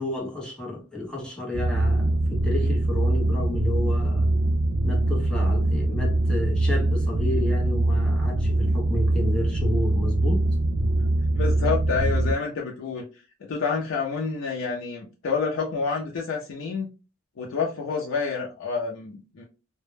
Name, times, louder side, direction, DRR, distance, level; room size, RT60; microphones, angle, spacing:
voice 1, 0.0-4.3 4.8-10.4, left 2 dB, 5° left, 0.6 m, -32 dB
Cinematic Bass Atmosphere, 1.5-12.3, right 1 dB, 70° right, 0.5 m, -23 dB
voice 2, 11.4-16.9 17.4-19.4, left 5 dB, 70° left, 0.4 m, -28 dB
2.1 x 2.0 x 3.1 m
head